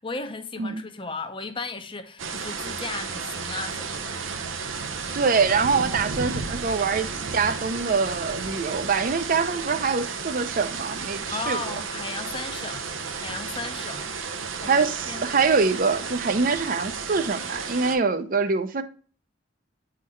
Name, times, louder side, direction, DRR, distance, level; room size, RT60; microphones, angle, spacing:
voice 1, 0.0-4.2 11.3-14.8 15.1-15.2, left 3 dB, 25° left, 0.6 m, -35 dB
sound 1, 2.2-18.0, right 5 dB, 90° right, 0.6 m, -33 dB
voice 2, 5.1-11.7 14.7-18.8, right 4 dB, 45° right, 0.5 m, -24 dB
8.7 x 3.8 x 3.1 m
head